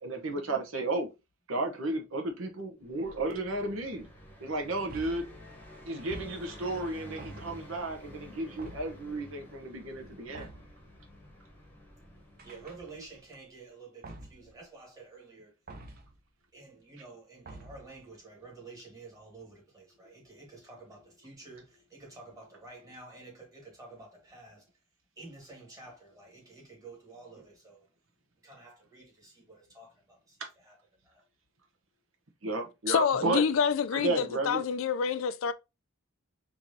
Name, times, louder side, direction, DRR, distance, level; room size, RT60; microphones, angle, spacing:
voice 1, 0.0-1.1 1.5-4.1 4.4-5.3 5.8-10.5 30.4-30.5 32.4-33.4 33.9-34.6, right 2 dB, 75° right, 1.1 m, -33 dB
Car passing by, 2.8-13.4, equal, 10° left, 1.0 m, -51 dB
sound 1, 4.9-5.4 6.1-6.7 7.2-7.8 8.6-9.1 10.3-10.8 12.4-13.2 14.0-14.5 15.7-16.2 17.5-18.0, right 2 dB, 45° right, 0.7 m, -47 dB
voice 2, 12.4-15.5 16.5-24.7 25.2-27.9 28.4-30.8 31.0-31.3, right 3 dB, 15° right, 1.8 m, -50 dB
voice 3, 32.9-35.5, left 7 dB, 70° left, 0.4 m, -27 dB
4.5 x 3.0 x 2.7 m
head